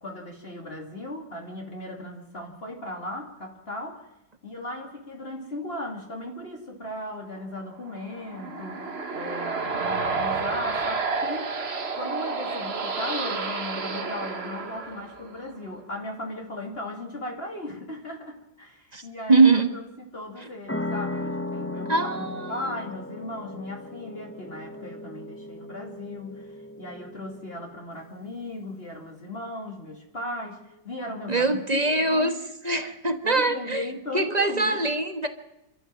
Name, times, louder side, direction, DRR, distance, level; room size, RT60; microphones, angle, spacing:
voice 1, 0.0-4.1 4.4-11.6 12.0-31.8 32.1-32.4 33.2-34.8, left 1 dB, 35° left, 1 dB, 3.0 m, -37 dB
sound 1, 7.9-15.5, right 4 dB, 40° right, 1.6 m, -30 dB
voice 2, 19.3-19.7 21.9-22.6 31.3-32.3 32.6-33.9 34.1-35.3, right 3 dB, 25° right, 7 dB, 1.5 m, -22 dB
sound 2, 20.7-27.9, left 2 dB, 15° left, 0.6 m, -36 dB
27.0 x 13.0 x 7.7 m, 0.93 s
omnidirectional pair, 1.7 m